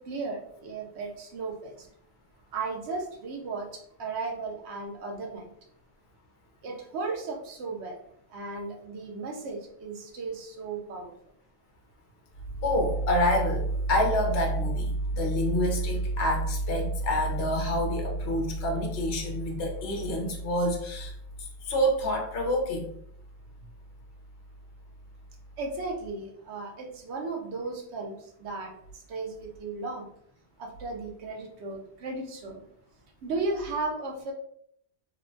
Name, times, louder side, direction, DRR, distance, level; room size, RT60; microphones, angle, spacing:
voice 1, 0.0-1.9 2.5-5.5 6.6-8.0 8.3-11.1 25.6-30.1 30.6-32.6 33.2-34.3, right 3 dB, 90° right, 0 dB, 0.9 m, -35 dB
voice 2, 12.6-21.1 21.7-22.9, equal, 75° left, 1 dB, 0.9 m, -26 dB
3.0 x 2.1 x 2.5 m, 0.69 s
omnidirectional pair, 1.1 m